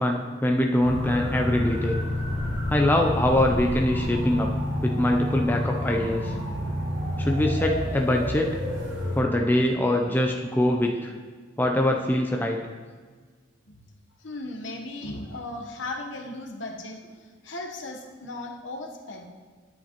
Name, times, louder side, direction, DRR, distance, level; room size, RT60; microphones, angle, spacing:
voice 1, 0.0-2.0 2.7-4.5 4.8-6.3 7.2-8.6 9.2-11.1 11.6-12.6, left 1 dB, 10° left, 2 dB, 0.4 m, -23 dB
sound 1, 0.8-9.2, left 1 dB, 75° right, 2.3 m, -29 dB
voice 2, 14.2-19.3, left 2 dB, 65° left, 2 dB, 1.0 m, -37 dB
10.0 x 8.1 x 3.0 m, 1.5 s
head